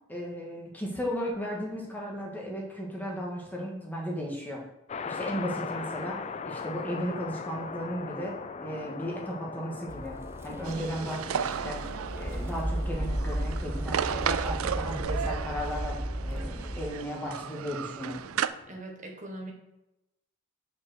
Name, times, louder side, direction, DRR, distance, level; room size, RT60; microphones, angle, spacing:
voice 1, 0.1-4.6 5.0-10.2 10.4-11.8 12.2-18.2, equal, 10° left, -3 dB, 1.8 m, -35 dB
sound 1, 4.9-18.8, left 5 dB, 30° left, 0.3 m, -41 dB
sound 2, 9.9-16.9, right 1 dB, 10° right, 0.7 m, -34 dB
sound 3, 10.6-18.5, right 8 dB, 75° right, 0.4 m, -34 dB
voice 2, 18.7-19.5, right 1 dB, 35° right, 0 dB, 1.5 m, -41 dB
5.8 x 5.2 x 6.2 m, 0.93 s
head